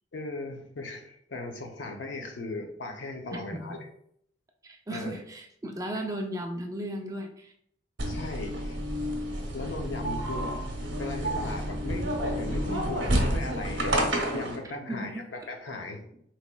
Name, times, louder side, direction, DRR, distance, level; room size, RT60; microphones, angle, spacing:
voice 1, 0.1-3.8 4.9-5.1 8.1-8.8 9.5-10.5 11.0-14.1 14.3-16.1, left 2 dB, 75° left, 0.6 m, -37 dB
voice 2, 4.6-7.5 14.8-15.2, right 1 dB, 20° right, 0.4 m, -36 dB
sound 1, 8.0-14.5, equal, 80° right, 0.8 m, -29 dB
4.1 x 2.9 x 2.2 m
head